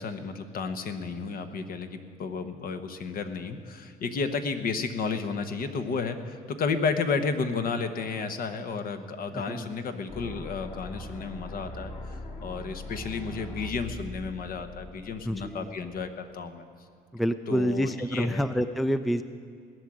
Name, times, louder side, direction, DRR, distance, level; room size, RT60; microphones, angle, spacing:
voice 1, 0.0-16.6 17.5-18.4, left 5 dB, 60° left, 8 dB, 1.2 m, -32 dB
voice 2, 9.3-9.7 15.2-15.8 17.1-19.2, equal, ahead, 11 dB, 0.4 m, -28 dB
sound 1, 10.1-16.1, left 1 dB, 40° left, 2.1 m, -41 dB
18.0 x 6.4 x 9.9 m, 2.3 s
cardioid pair, 110°, 17 cm